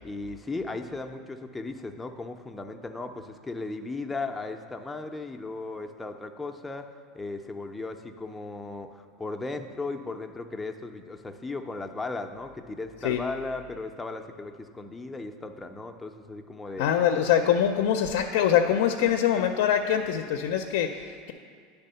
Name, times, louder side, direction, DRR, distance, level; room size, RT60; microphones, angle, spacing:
voice 1, 0.0-6.9 7.1-16.9, left 3 dB, 10° left, 5 dB, 0.4 m, -36 dB
voice 2, 16.8-21.3, left 9 dB, 75° left, 6 dB, 0.4 m, -24 dB
9.8 x 3.5 x 6.7 m, 2.2 s
supercardioid pair, 145°, 0 cm